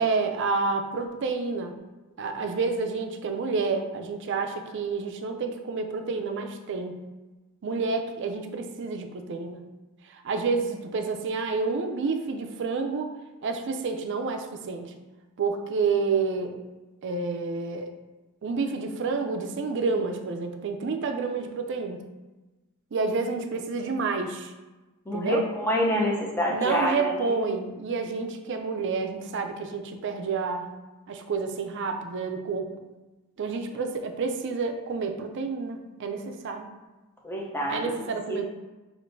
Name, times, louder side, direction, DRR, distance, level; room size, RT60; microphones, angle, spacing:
voice 1, 0.0-1.8 2.2-7.0 7.6-9.6 10.1-13.1 13.4-14.9 15.4-16.6 17.0-17.9 18.4-22.0 22.9-24.5 25.1-25.4 26.5-30.7 31.1-32.7 33.4-36.7 37.7-38.5, right 4 dB, 55° right, 5 dB, 0.4 m, -29 dB
voice 2, 25.1-27.4 37.2-37.9 38.3-38.5, equal, 10° left, -3 dB, 0.6 m, -27 dB
6.2 x 2.5 x 2.6 m, 1.2 s
head